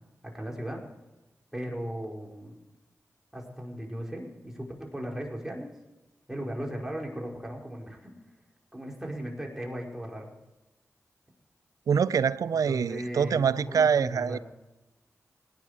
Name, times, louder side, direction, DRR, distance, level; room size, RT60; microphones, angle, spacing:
voice 1, 0.2-0.8 1.5-2.6 3.3-5.8 6.3-8.1 8.7-10.3 12.6-14.4, equal, 10° right, 5.2 m, -37 dB
voice 2, 11.9-14.4, right 7 dB, 80° right, 0.4 m, -25 dB
18.0 x 10.0 x 5.1 m
cardioid pair, 40°, 6 cm